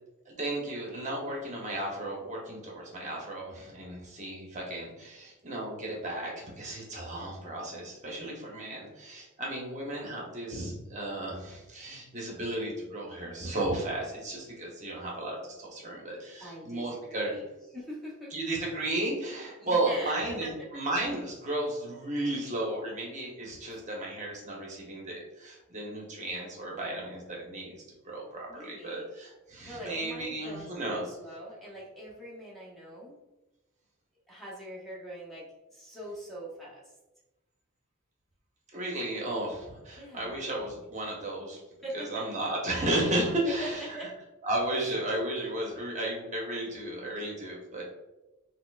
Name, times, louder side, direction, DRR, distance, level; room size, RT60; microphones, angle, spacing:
voice 1, 0.3-17.4 18.3-27.8 28.0-31.1 38.7-41.6 41.9-44.0 44.4-47.8, right 1 dB, 35° right, -2 dB, 0.7 m, -34 dB
voice 2, 16.4-17.5 17.7-18.3 19.6-20.7 23.7-23.8 28.5-29.1 29.6-33.2 34.3-36.9 40.0-40.5 41.8-42.3 43.4-44.1 44.8-44.9, right 1 dB, ahead, -6 dB, 0.6 m, -42 dB
4.2 x 2.0 x 2.3 m, 1.0 s
head